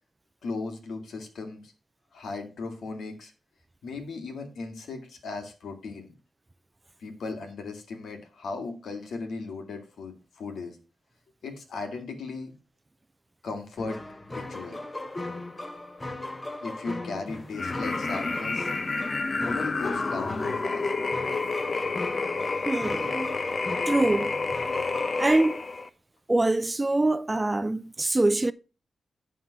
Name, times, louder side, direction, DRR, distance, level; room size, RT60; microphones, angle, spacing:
voice 1, 0.4-1.7 2.1-3.3 3.8-6.1 7.0-10.8 11.4-12.5 13.4-14.0 14.3-14.8 16.6-18.7 19.4-20.9, left 3 dB, 85° left, 2.0 m, -37 dB
sound 1, 13.8-25.3, left 2 dB, 25° left, 1.0 m, -38 dB
sound 2, 17.5-25.9, left 3 dB, 45° left, 0.8 m, -29 dB
voice 2, 22.7-23.4 23.9-24.4 25.2-25.6 26.3-28.5, right 2 dB, 20° right, 0.4 m, -24 dB
11.0 x 3.8 x 5.8 m
cardioid pair, 70°, 0 cm